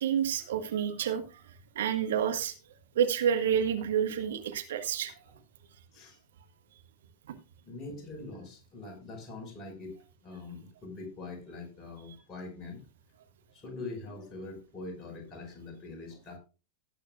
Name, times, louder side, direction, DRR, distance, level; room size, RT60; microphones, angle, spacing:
voice 1, 0.0-1.2 1.7-2.5 2.9-5.1, right 8 dB, 60° right, 7 dB, 1.5 m, -28 dB
voice 2, 7.6-12.8 13.5-16.4, left 3 dB, 25° left, 2 dB, 5.5 m, -43 dB
18.0 x 8.9 x 2.4 m, 0.31 s
figure-of-eight pair, 90°, 0 cm